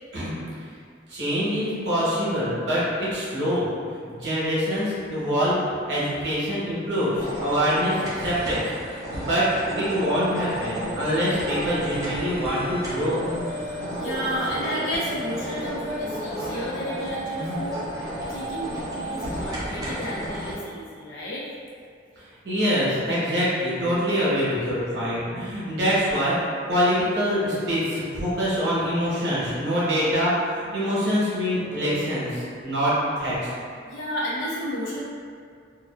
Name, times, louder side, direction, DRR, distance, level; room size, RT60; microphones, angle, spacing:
voice 1, 1.1-3.7 4.1-5.6 5.8-8.6 8.9-9.5 9.7-13.2 22.4-33.4, equal, 60° right, -9 dB, 0.9 m, -25 dB
sound 1, 7.2-20.5, equal, 20° right, 0.4 m, -32 dB
voice 2, 13.5-17.8 18.3-21.5 33.8-35.0, equal, 80° left, -6 dB, 0.6 m, -32 dB
2.5 x 2.2 x 2.2 m, 2.2 s
head